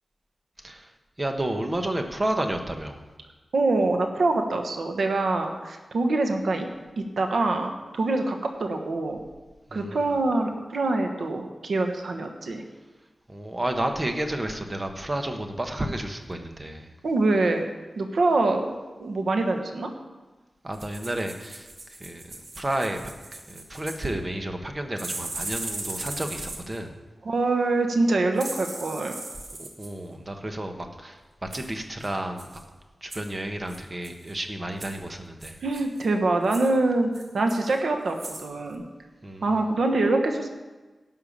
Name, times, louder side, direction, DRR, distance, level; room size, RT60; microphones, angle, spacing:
voice 1, 1.2-3.0 9.7-10.0 13.3-16.9 20.6-21.7 22.0-22.2 22.6-23.0 23.3-26.9 29.6-32.5 33.0-35.6 39.2-39.6, right 1 dB, 25° right, 5 dB, 1.2 m, -31 dB
voice 2, 3.5-6.7 7.0-9.2 9.7-12.6 17.0-17.6 18.0-19.9 27.2-29.1 35.6-38.8 39.4-40.5, right 2 dB, 85° right, 4 dB, 1.2 m, -25 dB
sound 1, 20.7-24.1 25.0-26.8 28.4-29.9 31.5-31.7 32.0-32.1 32.4-32.6 33.1-33.3 33.7-34.3 34.8-35.0 35.4-36.1 36.4-36.7 37.1-37.8 38.1-38.5 38.7-38.8, right 2 dB, 60° right, 1.9 m, -38 dB
12.0 x 5.8 x 8.7 m, 1.3 s
wide cardioid pair, 100°, 0 cm